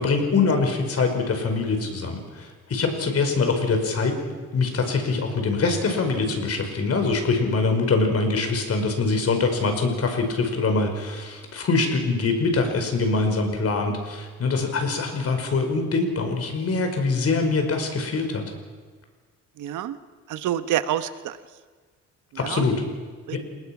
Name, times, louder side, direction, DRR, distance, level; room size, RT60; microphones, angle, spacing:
voice 1, 0.0-4.2 4.5-18.4 22.4-22.8 23.3-23.4, left 3 dB, 55° left, 5 dB, 5.3 m, -24 dB
voice 2, 19.6-20.0 20.3-21.4 22.4-22.6 23.3-23.4, right 11 dB, 80° right, 11 dB, 1.2 m, -27 dB
29.0 x 19.5 x 6.1 m, 1.5 s
cardioid pair, 90°, 30 cm